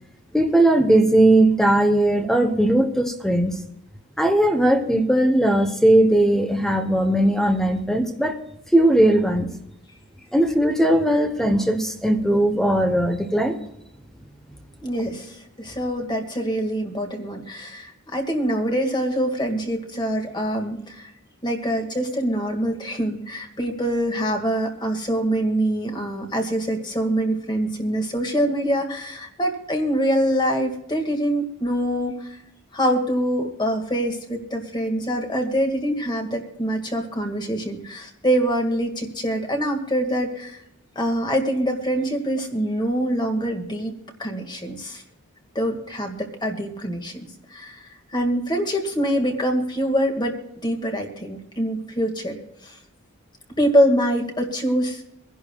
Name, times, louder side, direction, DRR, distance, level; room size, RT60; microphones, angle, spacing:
voice 1, 0.3-3.6 4.2-8.4 8.7-9.5 10.3-13.6, right 1 dB, ahead, 6 dB, 0.9 m, -18 dB
voice 2, 14.8-21.1 21.4-32.3 32.7-40.6 40.9-45.0 45.5-47.8 48.1-50.4 50.6-52.4 52.6-52.8 53.6-55.0, equal, 20° left, 3 dB, 1.8 m, -24 dB
24.5 x 11.0 x 2.3 m, 0.84 s
head